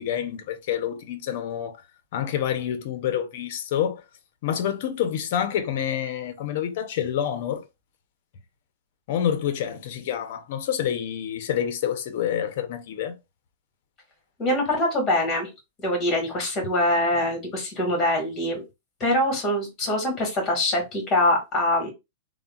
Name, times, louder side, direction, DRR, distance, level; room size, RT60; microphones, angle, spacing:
voice 1, 0.0-1.8 2.1-4.0 4.4-7.6 9.1-13.1, left 9 dB, 55° left, 0.5 m, -27 dB
voice 2, 14.4-15.5 15.8-18.6 19.0-21.9, left 1 dB, 20° left, 1.4 m, -24 dB
3.5 x 2.1 x 2.2 m
hypercardioid pair, 145°, 0 cm